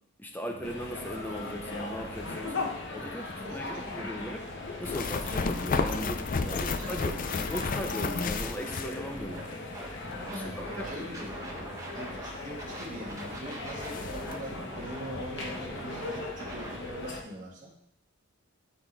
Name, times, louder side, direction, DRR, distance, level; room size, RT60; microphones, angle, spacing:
voice 1, 0.2-2.6 2.9-4.4 4.8-7.2 7.5-9.7 10.3-11.1, equal, 10° left, 3 dB, 0.7 m, -38 dB
sound 1, 0.6-17.2, left 2 dB, 55° left, 1.1 m, -39 dB
voice 2, 3.4-4.1 6.4-6.9 7.3-7.5 10.3-11.4 11.9-17.7, equal, 35° right, -5 dB, 2.0 m, -43 dB
sound 2, 4.8-9.5 9.8-9.9 12.8-12.9 13.3-13.4 13.7-14.4, left 4 dB, 40° left, 0.4 m, -32 dB
Scratching (performance technique), 9.0-9.4 9.7-12.3 12.6-16.8, right 2 dB, 15° right, 1.1 m, -42 dB
12.0 x 4.3 x 3.4 m, 0.73 s
head